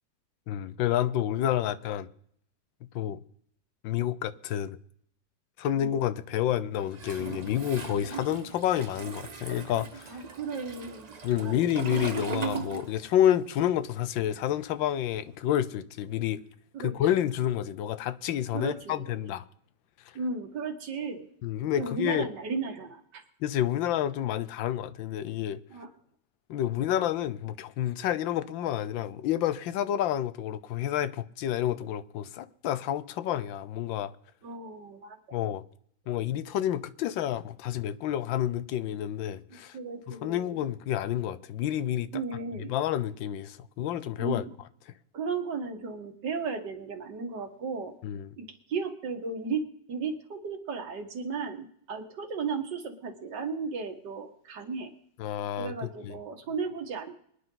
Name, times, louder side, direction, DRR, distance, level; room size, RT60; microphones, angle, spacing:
voice 1, 0.5-2.1 2.9-3.2 3.8-4.8 5.6-10.2 11.2-16.4 16.8-19.4 21.4-22.3 23.4-25.6 26.5-34.1 35.3-35.6 36.1-39.8 40.1-42.2 42.7-44.4 48.0-48.3 55.2-56.1, left 11 dB, 85° left, 1.4 m, -29 dB
Toilet flush, 6.9-13.4 13.6-15.2, right 6 dB, 50° right, 0.4 m, -38 dB
voice 2, 10.1-11.6 16.7-16.9 18.5-19.1 20.1-21.3 21.8-23.2 25.7-25.9 34.4-35.2 39.5-40.4 42.1-42.7 44.2-44.5 45.1-47.9 48.4-54.9 55.6-57.1, right 5 dB, 65° right, 2.2 m, -35 dB
24.0 x 10.0 x 3.9 m
omnidirectional pair, 2.0 m